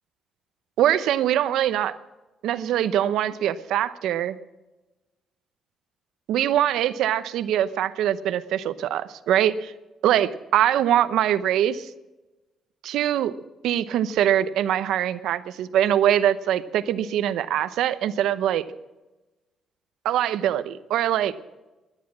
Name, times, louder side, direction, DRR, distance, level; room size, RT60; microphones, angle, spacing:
voice 1, 0.8-2.0 2.4-4.4 6.3-9.7 10.0-11.9 12.8-13.3 13.6-18.6 20.0-21.3, right 11 dB, 85° right, 13 dB, 0.8 m, -23 dB
17.0 x 11.0 x 6.1 m, 1.1 s
cardioid pair, 90°, 0 cm